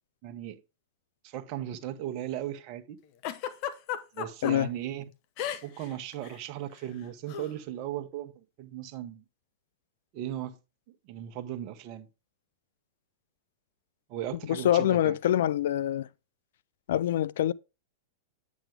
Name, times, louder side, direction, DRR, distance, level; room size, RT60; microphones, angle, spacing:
voice 1, 0.2-0.6 1.2-3.0 4.1-5.0 5.6-9.2 10.1-10.5 10.9-12.1 14.1-15.2, right 11 dB, 45° right, 1.0 m, -37 dB
Giggle, 3.2-4.5 5.4-5.9 6.1-6.4 7.3-7.5, left 10 dB, 50° left, 1.0 m, -34 dB
voice 2, 14.5-16.1 16.9-17.5, left 11 dB, 70° left, 0.4 m, -25 dB
9.0 x 6.2 x 3.5 m
hypercardioid pair, 110°, 0 cm